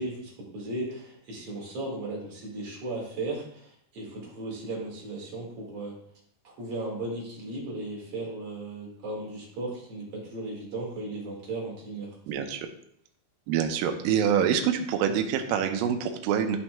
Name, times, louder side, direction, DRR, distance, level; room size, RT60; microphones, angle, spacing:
voice 1, 0.0-6.0 6.4-12.2, right 2 dB, 45° right, -3 dB, 2.5 m, -36 dB
voice 2, 12.3-12.7 13.5-16.6, right 8 dB, 80° right, 5 dB, 2.2 m, -26 dB
11.0 x 5.8 x 2.3 m, 0.68 s
omnidirectional pair, 4.5 m